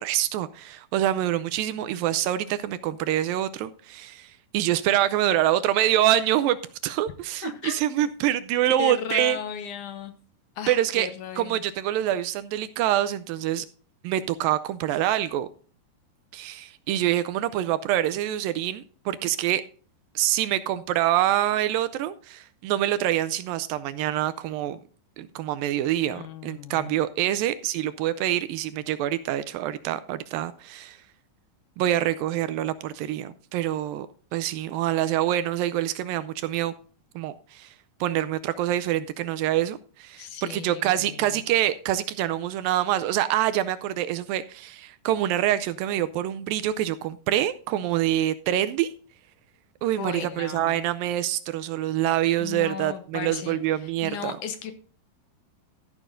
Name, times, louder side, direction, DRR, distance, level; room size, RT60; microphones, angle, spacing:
voice 1, 0.0-6.6 6.8-9.4 10.7-11.1 11.4-13.7 14.0-15.5 16.3-19.6 20.2-24.8 25.2-31.0 31.8-34.1 34.3-36.7 37.2-37.7 38.0-48.9 49.8-54.4, right 12 dB, 80° right, 13 dB, 2.1 m, -26 dB
voice 2, 7.4-7.8 8.7-10.1 10.6-11.6 26.1-26.9 40.2-41.4 50.0-50.8 52.4-53.6 53.8-54.7, left 7 dB, 70° left, 9 dB, 2.0 m, -35 dB
13.5 x 10.5 x 2.6 m, 0.42 s
omnidirectional pair, 4.5 m